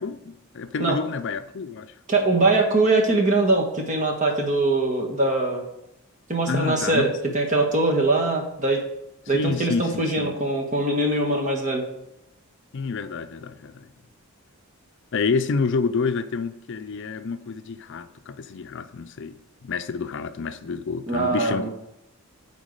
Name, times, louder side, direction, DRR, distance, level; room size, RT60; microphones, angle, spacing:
voice 1, 0.0-1.9 2.4-2.5 6.5-7.1 9.3-10.4 12.7-13.9 15.1-21.7, left 4 dB, 55° left, 0.5 m, -29 dB
voice 2, 2.1-5.6 6.3-8.8 9.3-11.8 21.1-21.7, right 2 dB, 35° right, 1.6 m, -22 dB
9.2 x 4.0 x 6.5 m
head